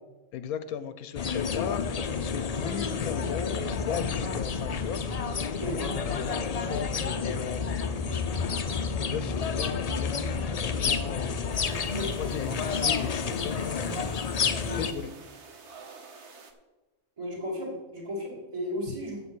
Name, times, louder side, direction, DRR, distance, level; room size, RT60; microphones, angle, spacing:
voice 1, 0.3-5.1 5.6-8.1 8.4-14.0 14.7-15.1, left 9 dB, 85° left, 12 dB, 1.1 m, -37 dB
sound 1, 1.1-14.9, left 5 dB, 55° left, 0.4 m, -30 dB
sound 2, 11.5-16.5, right 4 dB, 55° right, 1.3 m, -49 dB
voice 2, 17.2-19.2, equal, 20° right, -4 dB, 2.0 m, -34 dB
7.9 x 7.1 x 6.1 m, 1.1 s
omnidirectional pair, 1.5 m